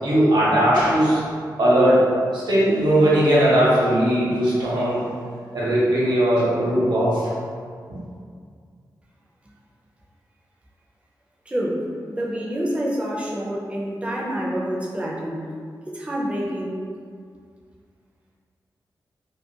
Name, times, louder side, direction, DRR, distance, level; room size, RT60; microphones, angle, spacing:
voice 1, 0.0-1.2 1.6-2.0 2.3-5.0 5.5-7.3 7.9-8.0, right 1 dB, 75° right, -8 dB, 0.8 m, -18 dB
voice 2, 11.5-11.8 12.1-15.4 15.9-16.8, equal, 15° right, -5 dB, 0.4 m, -27 dB
2.4 x 2.1 x 2.7 m, 2.2 s
wide cardioid pair, 140°, 8 cm